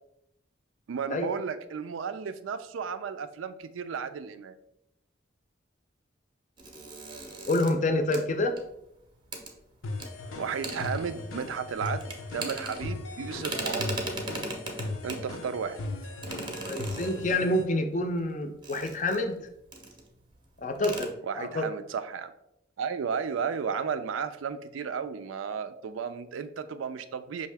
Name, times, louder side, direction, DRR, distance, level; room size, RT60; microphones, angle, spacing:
voice 1, 0.9-4.5 10.4-13.9 15.0-15.8 21.2-22.3 22.8-27.5, right 6 dB, 85° right, 11 dB, 0.4 m, -33 dB
sound 1, 6.6-8.9 9.3-9.5 10.0-10.1 10.4-11.4 11.8-13.1 13.4-15.3 16.2-17.5 18.6-19.4 19.7-20.0 20.3-20.4 20.7-21.1, right 2 dB, 25° right, 0.6 m, -37 dB
voice 2, 7.5-8.6 16.6-19.5 20.6-21.6, left 1 dB, 40° left, 6 dB, 0.5 m, -28 dB
sound 2, 9.8-17.7, left 2 dB, 90° left, 0.6 m, -38 dB
5.6 x 2.7 x 3.3 m, 0.81 s
head